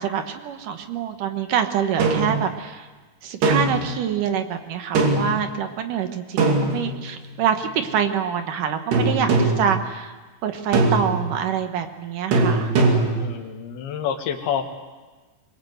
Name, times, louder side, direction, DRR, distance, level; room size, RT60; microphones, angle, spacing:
voice 1, 0.0-2.9 3.2-10.1 10.4-12.7, right 8 dB, 65° right, 7 dB, 2.5 m, -25 dB
sound 1, 2.0-2.4 3.4-3.9 4.9-5.4 6.4-7.2 8.9-9.7 10.7-11.3 12.3-13.3, right 3 dB, 90° right, 4.7 m, -20 dB
voice 2, 13.2-14.7, left 8 dB, 75° left, 4 dB, 3.5 m, -28 dB
24.0 x 21.5 x 8.0 m, 1.3 s
omnidirectional pair, 4.6 m